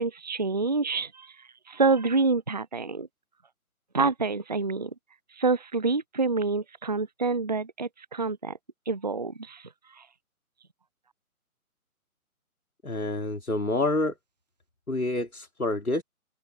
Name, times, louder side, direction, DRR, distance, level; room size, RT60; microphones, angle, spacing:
voice 1, 0.0-1.3 1.7-3.1 3.9-4.9 5.4-8.6 8.9-9.7 10.0-10.1, right 4 dB, 30° right, 0.5 m, -27 dB
voice 2, 12.8-14.1 14.9-16.0, left 2 dB, 80° left, 2.9 m, -27 dB
figure-of-eight pair, 145°, 43 cm